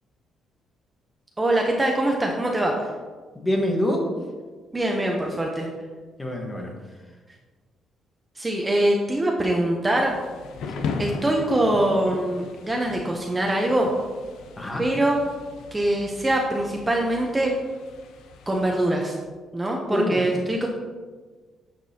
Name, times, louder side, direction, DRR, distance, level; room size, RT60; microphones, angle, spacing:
voice 1, 1.4-2.7 4.7-5.7 8.4-10.1 11.0-13.9 14.8-15.2 15.7-17.6 18.5-19.2 19.5-20.7, right 1 dB, 15° right, 0 dB, 0.7 m, -23 dB
voice 2, 3.3-4.0 6.2-6.7 10.6-10.9 14.6-14.8 19.9-20.2, left 1 dB, 15° left, 1 dB, 1.3 m, -26 dB
Thunder / Rain, 9.8-18.8, left 5 dB, 80° left, 0.6 m, -38 dB
9.1 x 6.0 x 2.8 m, 1.4 s
cardioid pair, 125°, 0 cm